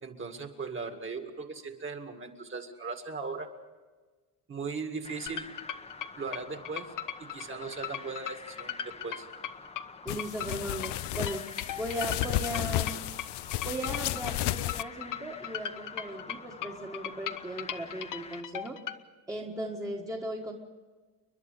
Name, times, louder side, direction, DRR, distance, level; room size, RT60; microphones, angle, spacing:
voice 1, 0.0-3.5 4.5-5.5 6.2-9.3, right 4 dB, 30° right, 5 dB, 2.1 m, -38 dB
sound 1, 5.0-18.4, left 3 dB, 15° left, 1.0 m, -49 dB
sound 2, 5.3-19.0, left 10 dB, 50° left, 1.1 m, -38 dB
voice 2, 10.0-13.0 13.6-18.8 19.3-20.5, right 1 dB, 10° right, 0 dB, 1.6 m, -37 dB
sound 3, 10.1-14.8, left 17 dB, 80° left, 0.6 m, -33 dB
30.0 x 11.0 x 8.1 m, 1.4 s
cardioid pair, 130°, 40 cm